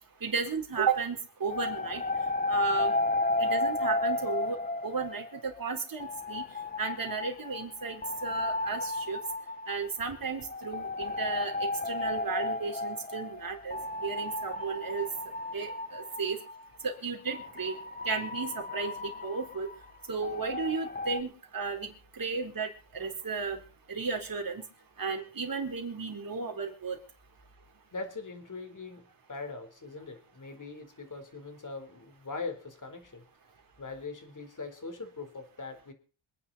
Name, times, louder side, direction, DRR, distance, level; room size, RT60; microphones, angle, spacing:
voice 1, 0.2-2.0 2.5-2.9 3.4-6.4 6.8-9.2 9.7-15.1 15.5-16.4 16.8-17.8 18.1-19.7 20.1-23.6 23.9-24.7 25.0-27.0, right 5 dB, 40° right, 3 dB, 4.1 m, -34 dB
sound 1, 1.5-5.6 6.0-16.6 17.3-21.2, left 2 dB, 15° left, 0.9 m, -33 dB
voice 2, 27.9-33.2 33.8-35.9, left 3 dB, 35° left, 7 dB, 4.1 m, -41 dB
26.5 x 9.7 x 4.2 m, 0.38 s
cardioid pair, 90°, 49 cm